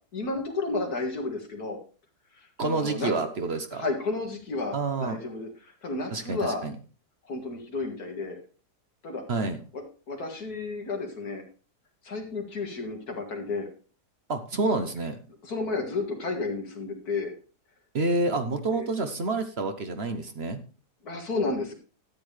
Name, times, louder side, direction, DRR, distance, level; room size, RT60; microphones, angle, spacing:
voice 1, 0.1-1.8 2.4-3.1 3.7-6.6 7.3-8.4 9.0-9.2 9.7-11.4 12.0-13.7 15.4-17.3 18.7-18.9 21.0-21.7, left 3 dB, 65° left, 3 dB, 2.4 m, -32 dB
voice 2, 2.6-3.8 4.7-5.2 6.1-6.7 9.3-9.6 14.3-15.2 17.9-20.6, right 3 dB, 45° right, 8 dB, 1.0 m, -28 dB
13.0 x 8.4 x 3.3 m, 0.37 s
omnidirectional pair, 1.7 m